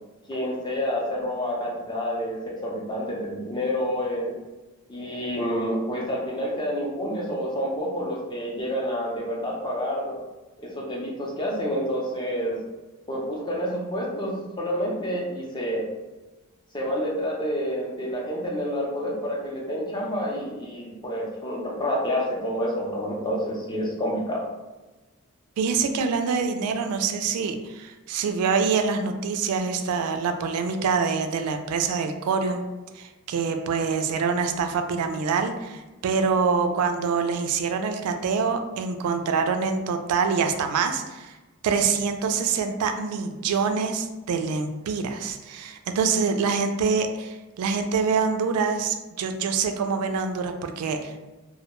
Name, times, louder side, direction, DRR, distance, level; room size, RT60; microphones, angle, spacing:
voice 1, 0.3-4.4 4.9-10.2 10.6-12.6 13.1-15.8 16.7-24.4, equal, 20° left, -3 dB, 0.5 m, -28 dB
voice 2, 25.6-32.6 32.9-41.4 41.6-51.2, right 5 dB, 90° right, 6 dB, 0.3 m, -25 dB
2.1 x 2.1 x 2.9 m, 1.1 s
head